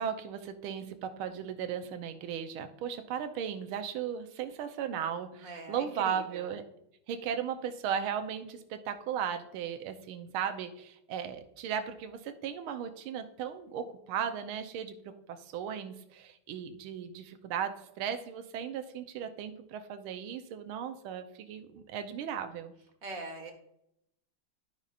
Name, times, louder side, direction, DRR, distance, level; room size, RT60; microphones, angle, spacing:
voice 1, 0.0-6.6 7.1-22.7, right 8 dB, 75° right, 7 dB, 1.6 m, -36 dB
voice 2, 5.4-6.5 23.0-23.5, right 3 dB, 45° right, 4 dB, 1.5 m, -42 dB
13.0 x 5.4 x 2.4 m, 0.77 s
omnidirectional pair, 2.4 m